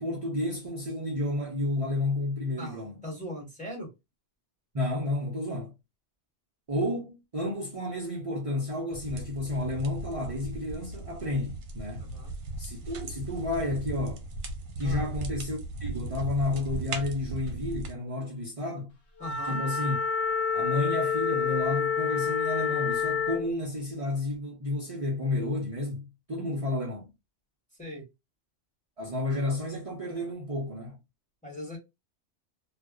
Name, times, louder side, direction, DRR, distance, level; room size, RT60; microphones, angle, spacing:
voice 1, 0.0-3.0 4.7-5.7 6.7-12.0 12.6-14.2 14.8-18.9 19.4-20.0 20.5-27.1 29.0-31.0, left 2 dB, 35° right, 0.7 m, -31 dB
voice 2, 2.6-3.9 12.0-12.3 14.8-15.1 19.2-19.6 27.8-28.0 31.4-31.8, left 1 dB, 5° left, 1.1 m, -40 dB
sound 1, 8.9-17.9, right 2 dB, 80° right, 0.9 m, -37 dB
Wind instrument woodwind instrument, 19.2-23.5, left 6 dB, 65° left, 0.9 m, -28 dB
2.4 x 2.2 x 2.3 m
omnidirectional pair, 1.1 m